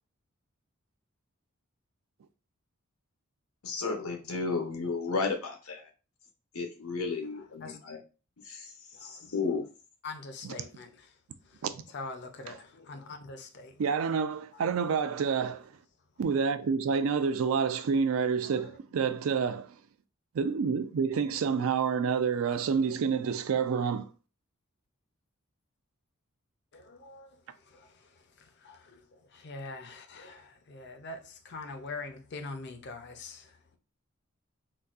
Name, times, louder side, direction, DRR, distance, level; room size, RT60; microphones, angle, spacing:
voice 1, 3.6-5.8 6.5-8.0 8.5-8.7 9.0-9.6, left 4 dB, 90° left, 0.8 m, -33 dB
voice 2, 7.3-7.8 8.9-9.3 10.0-11.2 11.4-13.9 14.5-15.0 15.2-15.3 18.4-18.8 22.8-22.9 26.7-33.8, left 3 dB, 55° left, 0.5 m, -44 dB
voice 3, 13.8-15.7 16.2-19.8 20.3-24.1, right 6 dB, 70° right, 0.4 m, -28 dB
3.9 x 2.2 x 2.4 m
head